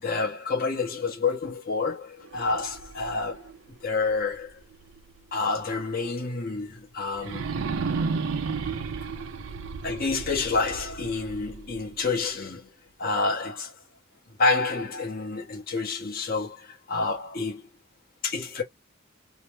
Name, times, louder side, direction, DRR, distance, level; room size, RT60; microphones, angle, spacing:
voice 1, 0.0-3.5 3.8-4.6 5.3-7.6 9.8-12.7 13.0-13.7 14.4-17.7 18.2-18.6, left 4 dB, 45° left, 1.0 m, -28 dB
sound 1, 2.2-5.2 5.7-5.8 7.1-12.2, right 5 dB, 65° right, 0.5 m, -34 dB
2.8 x 2.1 x 3.2 m
head